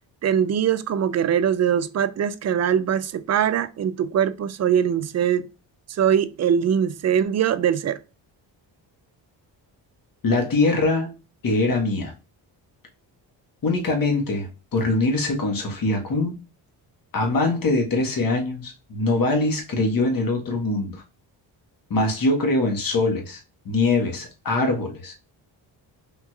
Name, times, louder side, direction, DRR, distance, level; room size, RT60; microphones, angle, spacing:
voice 1, 0.2-5.5 5.9-8.0, right 8 dB, 40° right, 0.4 m, -22 dB
voice 2, 10.2-11.1 11.4-12.1 13.6-16.4 17.1-21.0 21.9-23.4 23.6-25.2, left 2 dB, 45° left, 1.4 m, -23 dB
3.6 x 3.0 x 2.3 m
cardioid pair, 75°, 46 cm